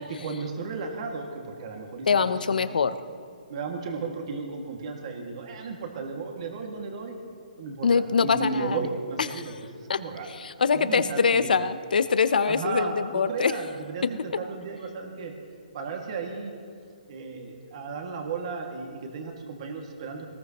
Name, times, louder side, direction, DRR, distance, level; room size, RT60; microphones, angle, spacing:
voice 1, 0.1-2.1 2.5-2.8 3.5-7.1 7.6-7.9 8.2-10.3 10.7-11.6 12.5-13.0 13.3-15.3 15.7-16.5 17.1-20.3, right 4 dB, 45° right, 1 dB, 2.2 m, -34 dB
voice 2, 2.1-2.9 7.8-8.8 9.2-13.5, left 5 dB, 75° left, 12 dB, 0.8 m, -24 dB
21.0 x 19.5 x 3.1 m, 2.3 s
hypercardioid pair, 160°, 5 cm